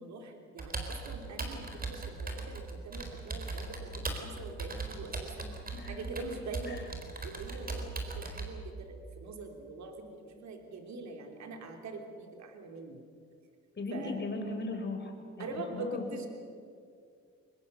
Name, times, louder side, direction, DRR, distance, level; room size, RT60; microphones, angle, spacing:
voice 1, 0.0-5.5 5.8-6.8 7.2-13.0 13.9-14.3 15.4-16.3, right 3 dB, 65° right, 4 dB, 3.3 m, -43 dB
Computer keyboard, 0.6-8.5, right 3 dB, 30° right, 4.0 m, -39 dB
voice 2, 5.7-6.1 6.7-6.8 13.8-16.0, left 3 dB, 35° left, 4 dB, 4.8 m, -38 dB
23.5 x 21.0 x 6.9 m, 2.3 s
cardioid pair, 90°, 30 cm